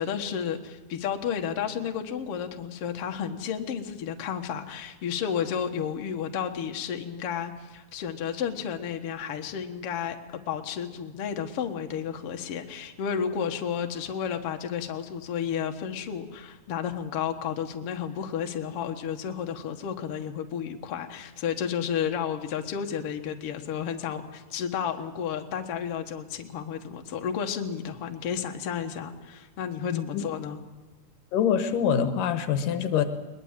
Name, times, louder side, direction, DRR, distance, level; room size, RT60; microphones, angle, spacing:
voice 1, 0.0-10.2 10.5-30.6, left 8 dB, 55° left, 5 dB, 2.1 m, -32 dB
voice 2, 29.9-30.2 31.3-33.1, left 8 dB, 85° left, 9 dB, 2.8 m, -25 dB
21.5 x 21.0 x 7.5 m, 1.2 s
omnidirectional pair, 3.8 m